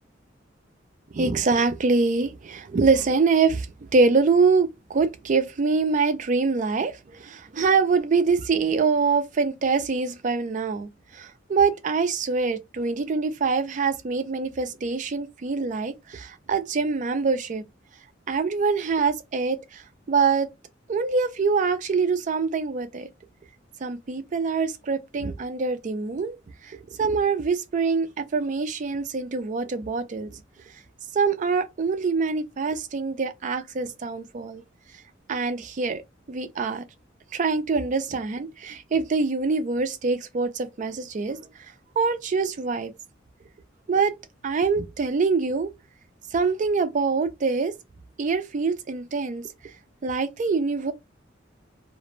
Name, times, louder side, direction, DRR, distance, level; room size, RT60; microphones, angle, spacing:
voice 1, 1.1-3.7 3.9-6.9 7.2-10.9 11.1-17.6 18.3-19.8 20.1-20.5 20.9-23.1 23.8-26.4 27.0-30.3 31.1-34.6 35.3-36.0 36.3-36.8 37.3-41.4 42.0-42.9 43.9-44.1 44.4-45.7 46.3-47.7 48.2-49.4 50.0-50.9, right 4 dB, 40° right, 0.4 m, -24 dB
2.5 x 2.0 x 3.0 m
head